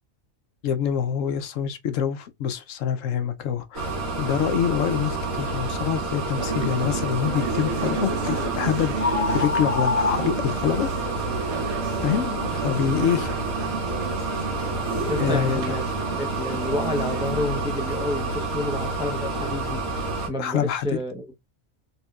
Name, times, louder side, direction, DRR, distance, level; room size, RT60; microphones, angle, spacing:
voice 1, 0.6-3.9 4.2-9.0 9.3-10.9 12.0-13.3 15.2-15.8 20.4-21.0, left 8 dB, 70° left, 1.0 m, -26 dB
sound 1, 3.7-20.3, right 3 dB, 90° right, 2.1 m, -29 dB
sound 2, 6.4-17.5, right 4 dB, 60° right, 0.9 m, -32 dB
sound 3, 8.2-8.5 9.0-11.0, left 4 dB, 30° left, 0.9 m, -27 dB
voice 2, 15.1-15.8 16.2-19.8 20.3-21.3, left 1 dB, 5° right, 0.4 m, -29 dB
4.1 x 3.6 x 2.3 m
omnidirectional pair, 1.5 m